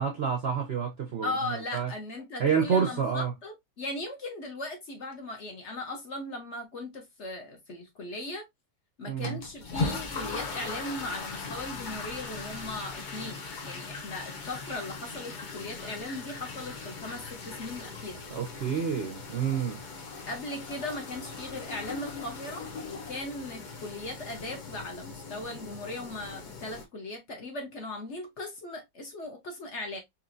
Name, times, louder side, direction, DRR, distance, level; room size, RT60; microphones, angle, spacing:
voice 1, 0.0-1.3 1.7-1.9 2.4-3.3 9.1-9.4 18.3-19.8, right 7 dB, 60° right, 0.6 m, -28 dB
voice 2, 1.2-8.4 9.0-18.2 20.3-30.0, left 2 dB, 50° left, 1.1 m, -38 dB
sound 1, 9.2-26.9, left 4 dB, 80° left, 0.4 m, -39 dB
4.2 x 3.0 x 2.5 m
omnidirectional pair, 1.8 m